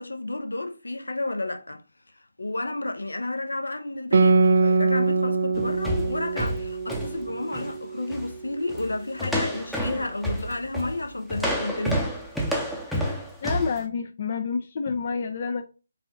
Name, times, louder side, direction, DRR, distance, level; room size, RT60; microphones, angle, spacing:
voice 1, 0.0-1.8 2.4-12.1, left 2 dB, 75° left, 0.8 m, -31 dB
Guitar, 4.1-9.1, right 4 dB, 50° right, 0.4 m, -24 dB
sound 1, 5.5-7.8 8.1-8.3 8.7-8.9 9.2-13.8, equal, ahead, 0.6 m, -29 dB
voice 2, 13.4-15.6, left 5 dB, 40° left, 0.4 m, -29 dB
4.8 x 2.5 x 3.4 m
figure-of-eight pair, 150°, 0 cm